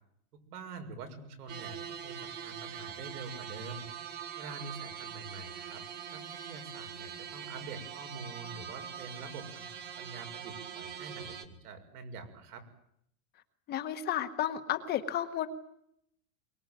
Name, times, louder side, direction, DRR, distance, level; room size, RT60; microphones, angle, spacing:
voice 1, 0.3-3.8 4.4-5.8 6.1-12.6, right 4 dB, 85° right, 6 dB, 6.5 m, -46 dB
sound 1, 1.5-11.4, right 8 dB, 20° right, 1.7 m, -43 dB
voice 2, 13.7-15.5, left 11 dB, 20° left, 9 dB, 1.1 m, -32 dB
23.5 x 22.5 x 9.2 m, 0.74 s
supercardioid pair, 175°, 45 cm